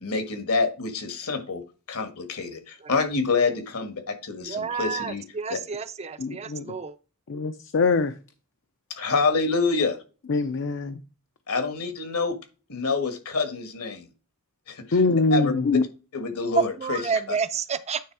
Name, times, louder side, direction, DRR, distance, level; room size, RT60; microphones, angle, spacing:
voice 1, 0.0-1.6 1.9-5.2 5.5-5.6 8.9-10.0 11.5-12.4 12.7-14.0 14.7-14.8 15.3-15.5 16.1-17.0, left 4 dB, 75° left, 1.6 m, -27 dB
voice 2, 4.4-7.0 16.6-18.0, right 5 dB, 30° right, 0.5 m, -29 dB
voice 3, 6.2-6.7 7.3-8.1 10.3-11.0 14.9-15.8, left 3 dB, 55° left, 0.5 m, -23 dB
9.4 x 3.4 x 4.7 m
head